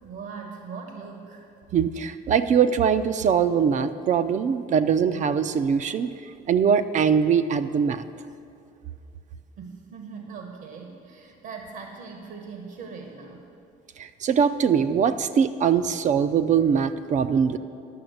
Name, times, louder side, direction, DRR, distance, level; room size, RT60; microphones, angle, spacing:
voice 1, 0.0-1.4 9.6-13.4, right 5 dB, 70° right, 3 dB, 1.2 m, -40 dB
voice 2, 1.7-6.1 6.5-8.0 14.0-17.6, right 7 dB, 45° right, 12 dB, 0.5 m, -22 dB
11.0 x 6.0 x 7.9 m, 2.5 s
cardioid pair, 110°, 17 cm